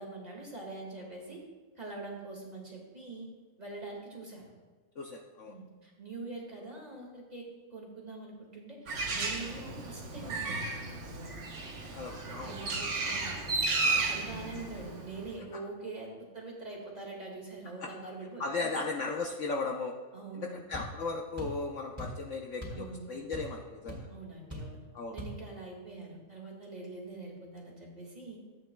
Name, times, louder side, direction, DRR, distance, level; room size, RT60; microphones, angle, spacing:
voice 1, 0.0-1.4 1.8-3.3 3.6-4.5 5.5-11.4 12.4-13.4 13.8-18.7 20.1-20.6 22.7-23.1 24.1-24.8 25.1-28.4, right 3 dB, 25° right, -2 dB, 1.9 m, -44 dB
voice 2, 5.0-5.5 11.9-12.5 17.8-17.9 18.4-20.0 20.3-24.1 24.9-25.2, left 3 dB, 60° left, 1 dB, 0.9 m, -36 dB
Bird, 8.9-15.4, right 3 dB, 55° right, 1.2 m, -34 dB
sound 1, 20.7-20.9 21.4-21.6 22.0-22.2 22.6-22.9 23.1-23.6 23.9-24.0 24.5-24.7 25.2-25.4, equal, 10° right, 2.9 m, -40 dB
14.5 x 8.7 x 2.2 m, 1.4 s
omnidirectional pair, 1.6 m